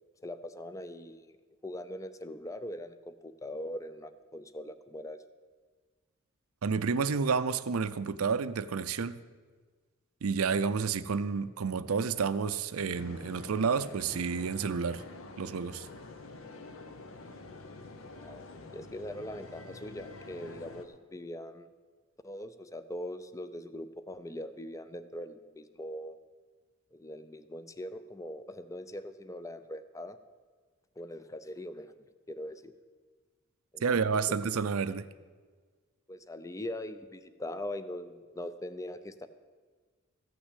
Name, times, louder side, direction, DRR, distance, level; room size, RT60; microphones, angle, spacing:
voice 1, 0.2-1.4 1.6-5.2 18.2-18.4 18.7-21.7 22.2-26.2 26.9-30.2 31.0-31.9 32.3-32.7 33.7-34.4 36.1-39.3, left 1 dB, 15° left, 0.5 m, -41 dB
voice 2, 6.6-9.2 10.2-15.0 15.4-15.9 33.8-35.1, right 5 dB, 80° right, 0.5 m, -30 dB
sound 1, 12.9-20.9, left 3 dB, 65° left, 0.9 m, -47 dB
14.5 x 6.1 x 8.2 m
head